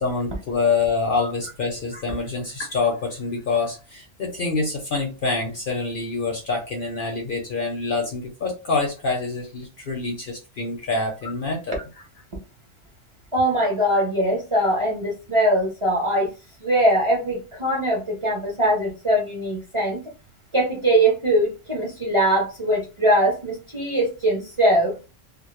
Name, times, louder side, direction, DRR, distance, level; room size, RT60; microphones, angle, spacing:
voice 1, 0.0-11.8, left 4 dB, 55° left, 1 dB, 0.6 m, -26 dB
voice 2, 13.3-16.3 16.6-20.0 20.5-24.9, right 1 dB, 35° right, -2 dB, 0.6 m, -21 dB
2.2 x 2.0 x 3.0 m, 0.30 s
omnidirectional pair, 1.3 m